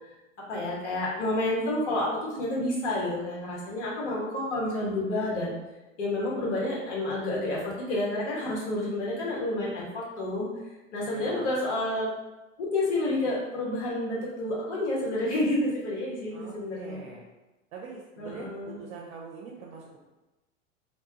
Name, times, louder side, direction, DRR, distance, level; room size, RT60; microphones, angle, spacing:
voice 1, 0.5-2.1 2.4-5.5 6.0-10.5 10.9-12.1 12.6-17.0 18.2-18.8, left 1 dB, 60° left, -5 dB, 1.2 m, -29 dB
voice 2, 11.0-11.5 16.3-17.3 17.7-20.0, right 4 dB, 55° right, -2 dB, 0.6 m, -43 dB
2.9 x 2.2 x 2.8 m, 1.1 s
hypercardioid pair, 100°, 39 cm